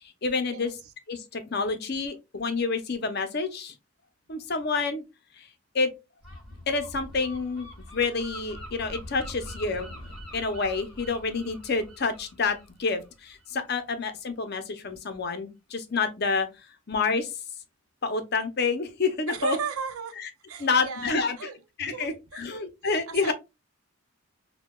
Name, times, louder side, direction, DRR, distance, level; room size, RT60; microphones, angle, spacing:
voice 1, 0.2-0.7 1.1-3.7 4.3-5.0 5.4-5.5 5.7-5.9 6.7-7.7 7.9-9.9 10.3-16.5 16.9-17.3 18.0-19.6 20.2-20.3 20.6-21.5 21.8-23.3, left 4 dB, 50° left, 0.6 m, -28 dB
Gull seagull, 6.2-13.7, equal, 5° left, 1.5 m, -44 dB
voice 2, 19.3-20.2 20.5-21.5 21.9-23.3, right 5 dB, 80° right, 0.6 m, -36 dB
5.5 x 2.2 x 2.3 m
head